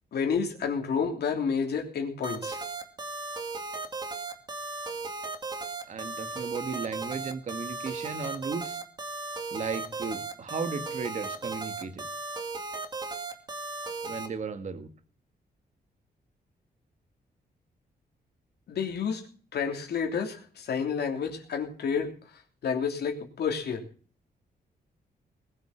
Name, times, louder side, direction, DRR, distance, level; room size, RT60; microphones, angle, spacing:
voice 1, 0.1-2.6 18.7-19.2 19.5-22.1 22.6-23.8, left 6 dB, 80° left, 3 dB, 3.1 m, -30 dB
sound 1, 2.2-14.3, right 3 dB, 25° right, 2.2 m, -36 dB
voice 2, 5.9-8.8 9.5-12.1 14.0-14.9, right 5 dB, 45° right, 9 dB, 1.7 m, -35 dB
20.5 x 7.9 x 5.8 m, 0.42 s
wide cardioid pair, 175°, 17 cm